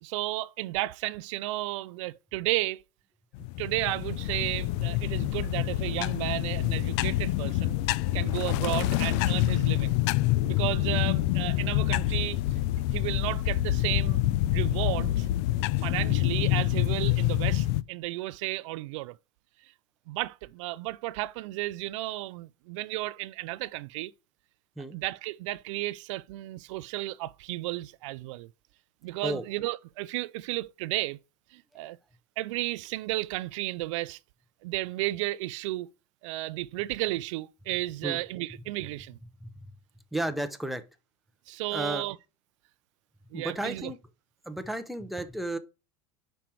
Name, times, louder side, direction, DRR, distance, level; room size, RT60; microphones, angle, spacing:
voice 1, 0.0-2.8 3.6-7.8 8.1-10.0 10.4-12.4 12.9-14.2 14.5-15.3 15.8-19.2 19.6-19.7 20.1-24.1 24.9-28.5 29.0-31.2 31.5-32.0 32.4-34.2 34.6-35.9 36.2-39.2 41.5-42.2 43.3-43.9, right 18 dB, 85° right, 0.4 m, -33 dB
sound 1, 3.3-17.8, left 15 dB, 65° left, 0.4 m, -27 dB
voice 2, 40.1-40.8 41.7-42.1 43.3-44.0 44.5-45.6, right 1 dB, ahead, 0.7 m, -33 dB
5.1 x 4.5 x 6.0 m
supercardioid pair, 135°, 16 cm